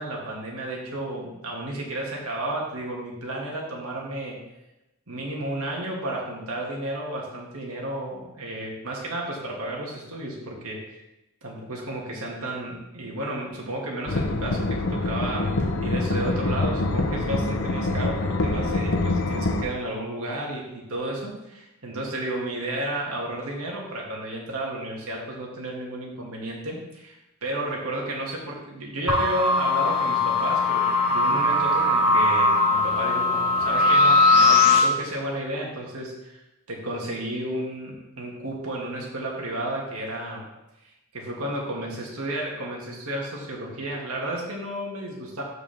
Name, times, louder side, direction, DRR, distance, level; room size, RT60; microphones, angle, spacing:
voice 1, 0.0-4.4 5.1-10.8 11.4-15.5 15.8-36.4 36.7-40.5 41.1-45.4, right 1 dB, 90° right, -2 dB, 2.2 m, -32 dB
sound 1, 14.1-19.6, left 2 dB, 70° left, 0.8 m, -25 dB
sound 2, 29.1-34.8, left 2 dB, 5° right, 3.3 m, -20 dB
13.0 x 5.0 x 3.6 m, 0.95 s
head